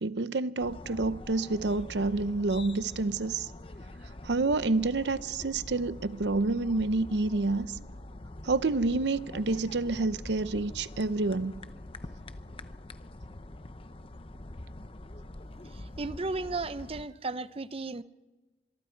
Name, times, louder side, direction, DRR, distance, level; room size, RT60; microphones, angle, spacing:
voice 1, 0.0-3.5 4.2-7.7 8.4-11.6, right 3 dB, 75° right, 0.7 m, -28 dB
sound 1, 0.6-17.1, left 1 dB, 30° left, 0.7 m, -45 dB
voice 2, 16.0-18.0, right 3 dB, 35° right, 0.6 m, -34 dB
25.5 x 23.0 x 4.6 m
head